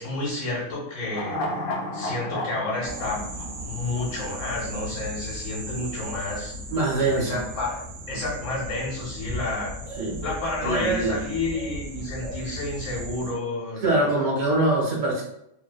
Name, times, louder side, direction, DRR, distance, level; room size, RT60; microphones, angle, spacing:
voice 1, 0.0-1.4 1.9-3.3 3.6-6.5 7.1-9.7 10.2-14.1, left 2 dB, 55° left, -6 dB, 1.2 m, -30 dB
sound 1, 1.0-4.4 4.7-4.8, left 1 dB, 85° left, 0.4 m, -32 dB
sound 2, 2.8-13.3, right 1 dB, 60° right, 0.7 m, -36 dB
voice 2, 6.7-7.4 10.0-10.2 10.6-11.2 13.8-15.2, right 2 dB, 80° right, -3 dB, 1.3 m, -23 dB
2.8 x 2.1 x 2.3 m, 0.79 s
omnidirectional pair, 1.5 m